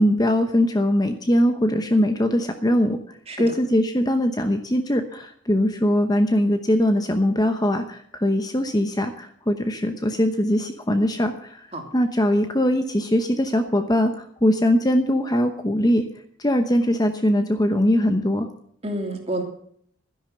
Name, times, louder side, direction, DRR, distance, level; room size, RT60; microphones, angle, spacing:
voice 1, 0.0-3.0 3.4-11.6 11.9-16.0 16.4-18.5, equal, 20° left, 7 dB, 0.9 m, -21 dB
voice 2, 3.3-3.6 11.7-11.9 18.8-19.4, right 1 dB, 30° right, 2 dB, 3.0 m, -29 dB
12.5 x 10.5 x 6.8 m, 0.64 s
head